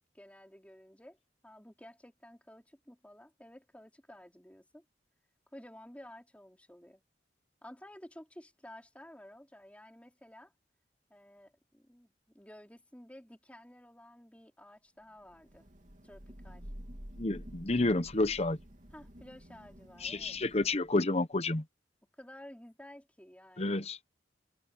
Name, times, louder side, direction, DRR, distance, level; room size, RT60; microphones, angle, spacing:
voice 1, 0.1-1.2 1.4-4.8 5.5-7.0 7.6-10.5 11.1-15.7 16.0-16.7 18.9-20.4 22.2-23.9, left 1 dB, 10° left, 4.1 m, -53 dB
Thunder / Rain, 15.3-21.1, equal, 45° right, 3.0 m, -50 dB
voice 2, 17.2-18.6 20.0-21.6 23.6-24.0, left 2 dB, 35° left, 1.0 m, -30 dB
head